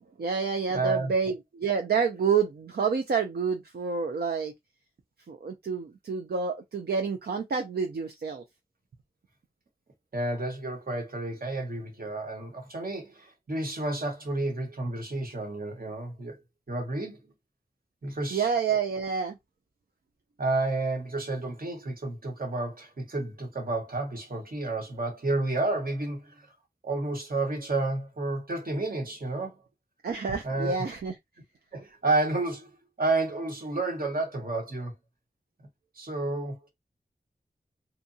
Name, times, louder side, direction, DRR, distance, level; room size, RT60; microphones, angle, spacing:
voice 1, 0.2-4.5 5.3-8.4 18.3-19.4 30.0-31.1, right 5 dB, 80° right, 0.4 m, -28 dB
voice 2, 0.7-1.1 10.1-16.4 16.7-17.3 18.0-18.5 20.4-26.5 26.8-29.6 30.4-30.8 31.7-32.7 33.0-34.9 36.0-36.7, right 2 dB, 65° right, 1.1 m, -30 dB
2.8 x 2.2 x 2.6 m
wide cardioid pair, 50°, 16 cm